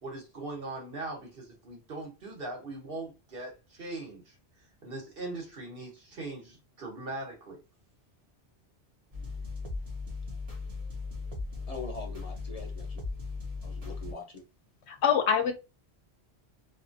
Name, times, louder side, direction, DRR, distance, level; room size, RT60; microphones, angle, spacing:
voice 1, 0.0-4.3 4.8-7.6, right 2 dB, 60° right, 1.3 m, -40 dB
sound 1, 9.1-14.1, left 3 dB, 35° right, 0.9 m, -37 dB
voice 2, 11.7-13.0 13.6-14.4, left 3 dB, 40° left, 0.7 m, -42 dB
voice 3, 14.9-15.5, left 7 dB, 90° left, 0.9 m, -24 dB
2.9 x 2.4 x 2.6 m
omnidirectional pair, 1.1 m